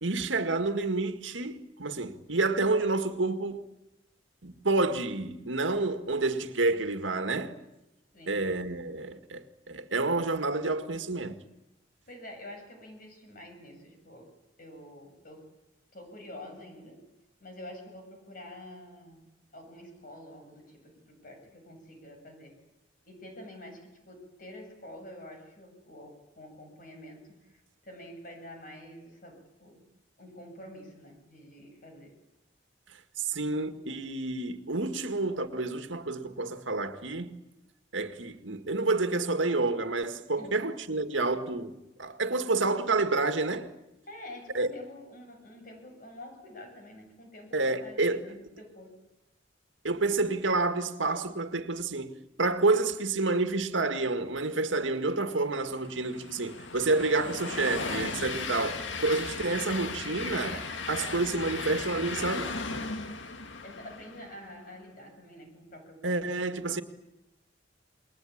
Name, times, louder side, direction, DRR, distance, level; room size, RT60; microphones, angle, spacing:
voice 1, 0.0-3.6 4.4-7.5 8.3-11.4 33.2-37.4 37.9-43.7 44.5-44.7 47.5-48.2 49.8-62.5 66.0-66.8, right 3 dB, 85° right, 1.9 m, -29 dB
voice 2, 12.1-14.3 14.6-15.5 15.9-17.0 17.4-19.3 19.5-22.5 23.0-29.9 30.2-32.2 40.4-40.7 44.1-48.9 63.6-66.2, left 1 dB, 45° left, 7.9 m, -47 dB
Train, 55.1-64.5, left 4 dB, 85° left, 1.9 m, -37 dB
28.5 x 22.0 x 8.7 m
head